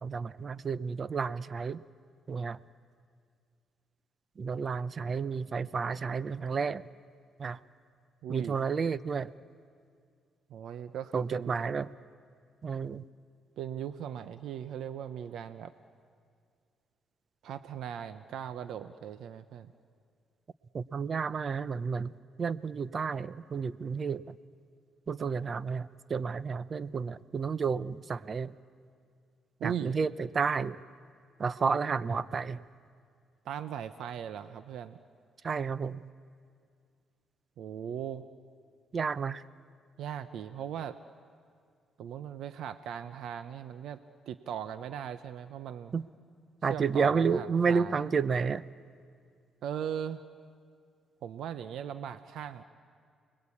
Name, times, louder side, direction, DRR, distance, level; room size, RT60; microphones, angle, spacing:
voice 1, 0.0-1.8 2.3-2.6 4.4-6.9 7.4-7.6 8.3-9.3 11.1-11.9 12.6-13.0 20.7-22.1 22.4-24.3 25.1-28.6 29.6-30.8 31.4-32.6 35.4-36.0 38.9-39.4 45.9-46.1 46.6-48.7, right 5 dB, 40° right, 16 dB, 0.7 m, -31 dB
voice 2, 8.2-8.6 10.5-11.5 13.6-15.7 17.4-19.7 29.6-29.9 33.4-35.0 37.6-38.3 40.0-41.0 42.0-44.0 44.3-45.9 46.7-48.0 49.6-50.2 51.2-52.6, right 9 dB, 75° right, 11 dB, 0.8 m, -38 dB
29.5 x 21.5 x 8.6 m, 2.2 s
cardioid pair, 90°, 0 cm